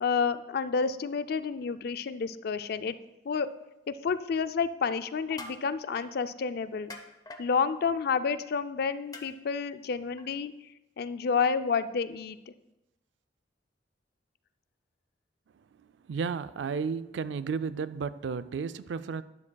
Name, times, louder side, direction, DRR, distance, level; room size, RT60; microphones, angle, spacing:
voice 1, 0.0-3.0 3.3-3.5 3.9-6.9 7.4-10.5 11.0-12.4, left 5 dB, 60° left, 0.4 m, -29 dB
sound 1, 5.2-5.6 6.0-6.1 6.9-7.4 9.1-9.2 10.2-10.3, left 2 dB, 20° left, 0.7 m, -43 dB
voice 2, 16.1-19.2, right 5 dB, 85° right, 0.4 m, -33 dB
12.0 x 9.7 x 2.3 m
head